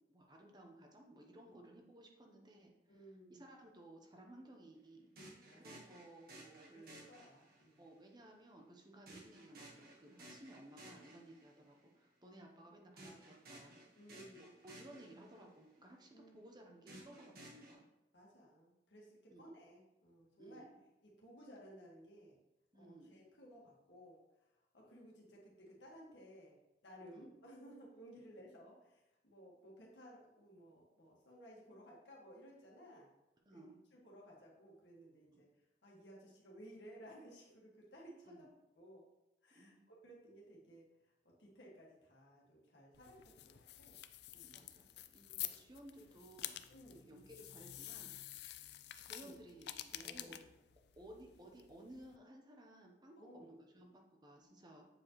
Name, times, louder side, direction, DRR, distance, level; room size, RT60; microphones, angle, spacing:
voice 1, 0.1-5.1 5.5-7.1 7.8-13.8 14.3-17.9 19.3-19.4 20.4-20.8 22.7-23.2 27.1-27.3 33.5-33.8 35.3-35.4 38.3-38.5 39.5-39.8 44.4-44.8 45.1-46.6 46.9-48.1 48.9-50.4 51.0-54.9, right 1 dB, 25° right, 2 dB, 0.8 m, -58 dB
voice 2, 2.9-3.4 5.5-5.6 6.7-7.8 14.0-14.5 16.1-16.5 18.1-20.6 21.0-22.4 22.8-24.2 24.7-26.5 26.8-33.1 33.5-33.6 33.9-35.5 35.8-38.5 38.7-39.1 39.4-40.9 41.2-44.0 44.3-44.6 45.5-45.6 46.7-47.1 49.2-49.3 50.0-50.5 53.2-53.5, equal, 85° left, -3 dB, 1.7 m, -58 dB
sound 1, 5.2-7.8 9.1-11.7 13.0-15.6 16.9-17.7, right 1 dB, 60° right, 1.4 m, -57 dB
sound 2, 42.9-52.2, left 13 dB, 65° left, 0.4 m, -49 dB
7.6 x 4.6 x 3.1 m, 0.95 s
head